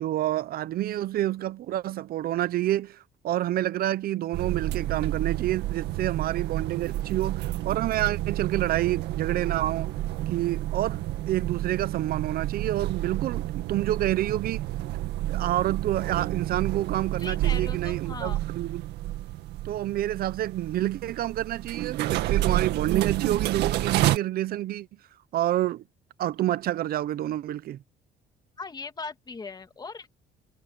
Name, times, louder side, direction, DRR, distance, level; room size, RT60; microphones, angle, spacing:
voice 1, 0.0-9.9 10.3-14.6 15.3-18.9 19.6-24.9 25.3-25.8 26.2-27.8, right 13 dB, 60° right, 0.8 m, -28 dB
sound 1, 4.3-24.2, right 15 dB, 80° right, 1.9 m, -30 dB
voice 2, 17.2-18.4 28.6-30.1, left 4 dB, 25° left, 2.2 m, -39 dB
cardioid pair, 110°, 17 cm